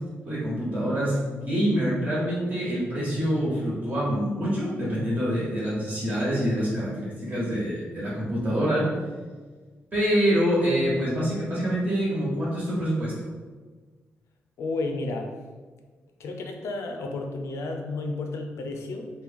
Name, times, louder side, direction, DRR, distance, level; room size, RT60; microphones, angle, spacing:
voice 1, 0.0-8.8 9.9-13.1, equal, 35° right, -7 dB, 1.3 m, -26 dB
voice 2, 14.6-15.3 16.2-19.1, left 2 dB, 80° left, 3 dB, 0.4 m, -32 dB
3.0 x 2.2 x 3.5 m, 1.4 s
wide cardioid pair, 135°, 5 cm